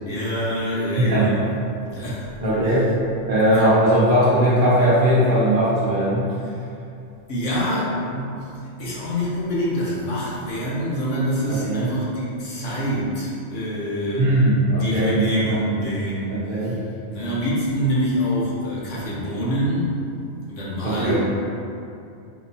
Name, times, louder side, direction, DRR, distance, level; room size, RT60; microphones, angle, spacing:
voice 1, 0.0-1.5 1.9-2.3 2.6-2.7 3.5-3.7 6.4-6.7 7.3-14.3 14.8-16.8 17.1-20.0 20.5-21.2, equal, 70° left, -7 dB, 1.2 m, -26 dB
voice 2, 1.0-1.3 2.4-2.9 3.3-6.3 11.5-11.9 14.2-15.6 16.3-16.8 20.8-21.2, right 1 dB, 50° right, -9 dB, 0.7 m, -19 dB
5.1 x 2.3 x 2.7 m, 2.6 s
omnidirectional pair, 1.3 m